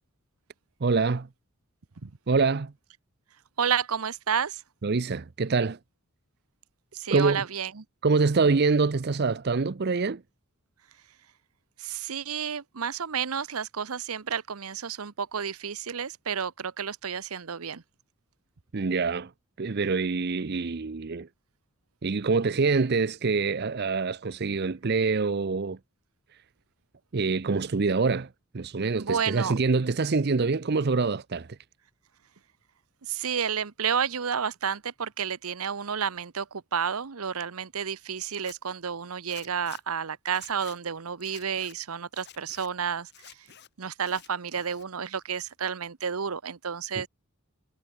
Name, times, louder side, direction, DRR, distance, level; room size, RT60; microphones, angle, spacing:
voice 1, 0.8-1.3 2.3-2.7 4.8-5.8 7.1-7.4 8.0-10.2 18.7-19.3 19.6-21.3 22.0-25.8 27.1-28.3 28.5-31.5 47.0-47.1, right 4 dB, 50° right, 0.6 m, -25 dB
voice 2, 3.6-4.6 6.9-7.8 11.8-17.8 29.0-29.5 33.1-43.3 43.8-47.1, right 7 dB, 90° right, 0.9 m, -31 dB
Zipper (clothing), 38.3-38.6 39.3-39.8 40.3-40.8 41.2-41.7 42.1-42.7 43.1-43.7 44.0-44.8 45.2-45.8, left 10 dB, 50° left, 2.8 m, -50 dB
head